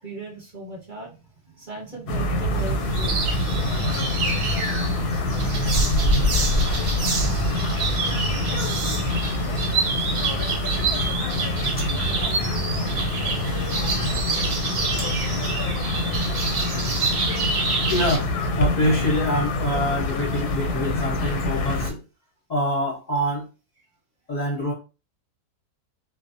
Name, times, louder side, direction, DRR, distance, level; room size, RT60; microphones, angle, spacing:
voice 1, 0.0-1.2 1.5-3.6, right 2 dB, 35° right, -4 dB, 1.1 m, -38 dB
sound 1, 2.1-21.9, left 1 dB, 85° left, 1.1 m, -26 dB
sound 2, 2.5-18.2, right 3 dB, 65° right, 1.0 m, -27 dB
sound 3, 14.9-15.1, right 1 dB, 15° right, 0.7 m, -46 dB
voice 2, 17.9-22.0 22.5-23.5 24.3-24.7, left 1 dB, 45° left, -4 dB, 0.6 m, -25 dB
2.5 x 2.1 x 2.6 m, 0.31 s
omnidirectional pair, 1.6 m